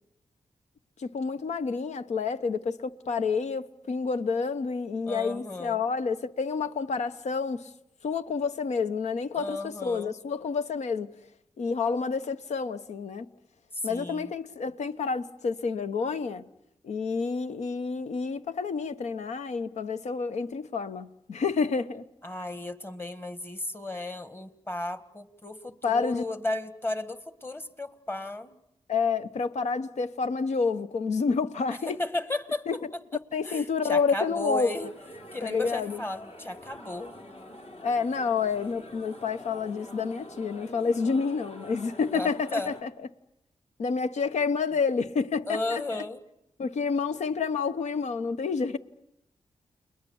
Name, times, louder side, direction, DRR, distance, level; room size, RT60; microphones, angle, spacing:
voice 1, 1.0-7.7 8.0-11.1 11.6-13.3 13.8-16.4 16.8-22.0 25.8-26.2 28.9-32.0 32.7-32.8 33.3-34.7 35.4-36.0 37.8-42.9 43.8-46.0 46.6-48.8, left 5 dB, 80° left, 1.0 m, -29 dB
voice 2, 5.1-5.8 9.3-10.1 13.8-14.3 22.2-28.6 31.7-32.8 33.4-34.9 35.3-37.1 42.1-42.7 45.5-46.2, left 2 dB, 20° left, 1.7 m, -34 dB
sound 1, 34.7-42.8, left 1 dB, 60° left, 3.8 m, -46 dB
30.0 x 21.5 x 7.2 m
cardioid pair, 70°, 12 cm